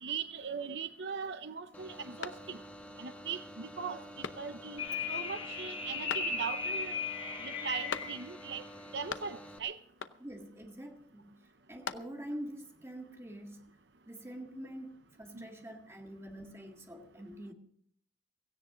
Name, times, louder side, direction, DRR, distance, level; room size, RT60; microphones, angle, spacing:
voice 1, 0.0-2.6 3.0-7.0 7.4-8.6 8.9-9.8 15.3-15.5, right 6 dB, 70° right, 0.7 m, -40 dB
sound 1, 1.7-9.6, equal, 10° left, 1.6 m, -49 dB
sound 2, 2.2-2.9 3.3-3.4 4.2-4.8 6.1-6.7 7.9-8.5 8.8-9.6 10.0-10.5 11.5-12.4, left 6 dB, 90° left, 0.7 m, -43 dB
sound 3, 4.8-8.3, left 5 dB, 30° left, 2.2 m, -37 dB
voice 2, 10.2-13.8 14.1-17.5, equal, 15° right, 1.8 m, -46 dB
17.0 x 16.0 x 3.9 m
head